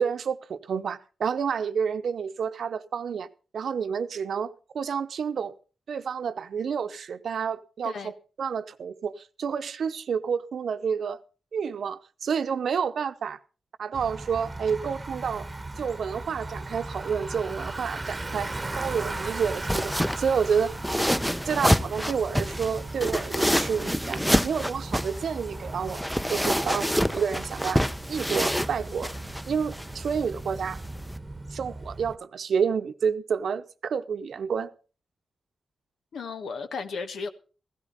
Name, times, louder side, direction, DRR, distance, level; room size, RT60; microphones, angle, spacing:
voice 1, 0.0-3.3 3.5-5.5 5.9-11.2 11.5-13.4 13.8-15.5 15.8-18.5 18.8-20.7 21.5-27.8 28.1-29.1 29.5-30.8 31.5-34.7, right 6 dB, 75° right, 0.8 m, -29 dB
Bicycle, 13.9-32.2, right 2 dB, 25° right, 1.1 m, -37 dB
sound 1, 18.5-31.2, equal, ahead, 0.7 m, -28 dB
voice 2, 36.1-37.3, left 4 dB, 80° left, 1.3 m, -34 dB
16.0 x 13.0 x 4.0 m
cardioid pair, 50°, 0 cm